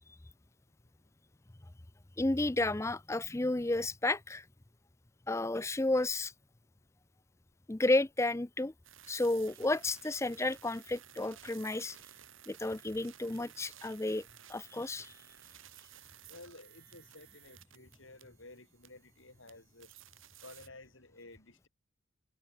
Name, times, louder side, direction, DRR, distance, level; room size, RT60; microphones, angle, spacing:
voice 1, 2.2-4.4 5.3-6.3 7.7-8.7 9.1-12.0 12.5-14.2 14.5-15.1, left 2 dB, 15° left, 0.4 m, -32 dB
sound 1, 8.8-20.7, right 11 dB, 75° right, 3.8 m, -56 dB
voice 2, 16.3-19.9 20.4-21.7, left 2 dB, 70° left, 6.0 m, -54 dB
head